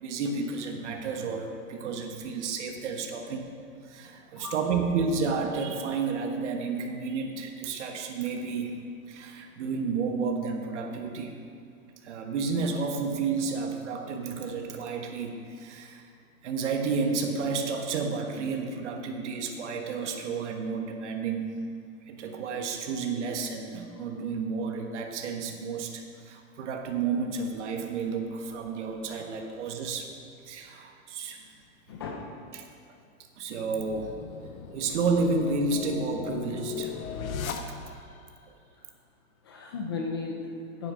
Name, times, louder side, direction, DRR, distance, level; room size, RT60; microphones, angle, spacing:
voice 1, 0.0-3.5 3.8-8.7 9.1-11.3 12.0-16.1 16.4-21.5 22.1-30.1 30.4-31.4 32.5-32.7 33.4-34.1 34.7-36.9 38.5-38.6, right 4 dB, 55° right, 3 dB, 1.4 m, -31 dB
voice 2, 31.9-32.3 37.8-37.9 39.4-40.9, left 4 dB, 20° left, 0 dB, 0.4 m, -35 dB
sound 1, 33.6-38.2, left 6 dB, 80° left, 1.2 m, -37 dB
9.7 x 8.5 x 6.2 m, 2.3 s
hypercardioid pair, 160°, 41 cm